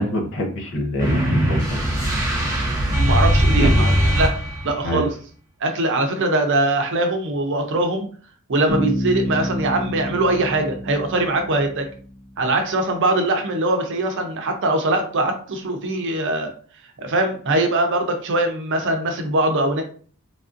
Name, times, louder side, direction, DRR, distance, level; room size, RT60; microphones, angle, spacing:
voice 1, 0.0-1.8 3.6-3.9 4.8-5.1, equal, 60° left, 2 dB, 0.7 m, -25 dB
sound 1, 1.0-4.8, equal, 15° right, 1.0 m, -19 dB
voice 2, 2.9-4.4 4.6-5.1 5.6-8.1 8.5-11.9 12.4-16.5 17.0-19.8, right 2 dB, 55° right, 5 dB, 0.6 m, -22 dB
Bass guitar, 8.7-12.4, left 1 dB, 85° left, 1.2 m, -28 dB
3.3 x 2.5 x 2.5 m, 0.44 s
head